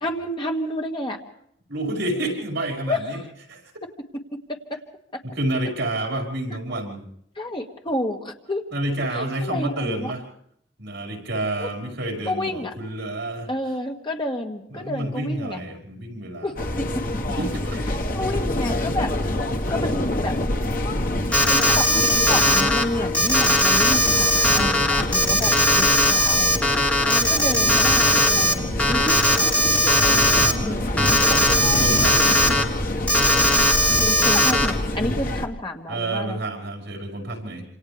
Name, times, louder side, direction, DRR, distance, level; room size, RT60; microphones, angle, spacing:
voice 1, 0.0-1.2 2.9-3.0 4.5-4.8 5.1-5.2 7.4-8.6 9.1-10.1 11.6-11.7 12.3-12.7 13.5-15.6 16.4-16.5 18.1-19.1 19.7-20.3 21.5-26.6 27.1-29.6 30.6-31.1 34.0-36.4, left 1 dB, 25° left, 2 dB, 2.0 m, -30 dB
voice 2, 1.7-3.2 3.5-3.7 5.2-7.0 8.7-10.2 10.8-13.5 14.7-16.7 17.4-17.9 24.5-24.9 28.6-29.1 30.1-31.0 31.6-32.4 35.9-37.6, right 1 dB, 70° right, 1 dB, 5.5 m, -29 dB
sound 1, 16.6-35.5, left 1 dB, 45° left, 1.6 m, -26 dB
Alarm, 21.3-22.8 23.1-28.5 28.8-30.5 31.0-32.6 33.1-34.7, left 1 dB, 5° left, 1.7 m, -19 dB
27.5 x 27.0 x 3.5 m, 0.72 s
head